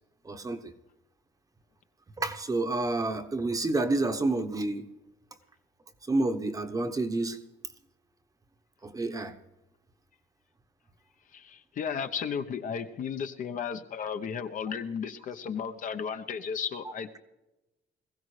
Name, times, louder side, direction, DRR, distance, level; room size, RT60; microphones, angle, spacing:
voice 1, 0.2-0.7 2.2-4.9 6.1-7.4 8.8-9.3, right 2 dB, 20° right, 1.0 m, -29 dB
voice 2, 11.3-17.2, left 7 dB, 50° left, 0.9 m, -34 dB
21.0 x 15.0 x 3.3 m
cardioid pair, 110°, 17 cm